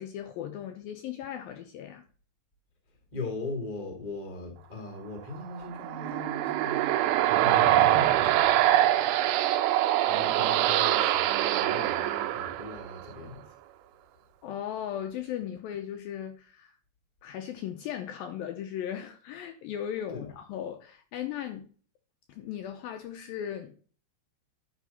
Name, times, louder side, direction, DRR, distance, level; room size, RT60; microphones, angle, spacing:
voice 1, 0.0-2.0 14.4-16.8 17.2-21.7 22.3-23.9, left 10 dB, 80° left, 2.2 m, -37 dB
voice 2, 3.1-6.9 7.4-8.8 10.1-13.5 20.1-20.3, left 3 dB, 25° left, 0.9 m, -39 dB
sound 1, 5.6-13.1, right 13 dB, 80° right, 2.3 m, -24 dB
11.0 x 4.2 x 5.5 m
omnidirectional pair, 4.7 m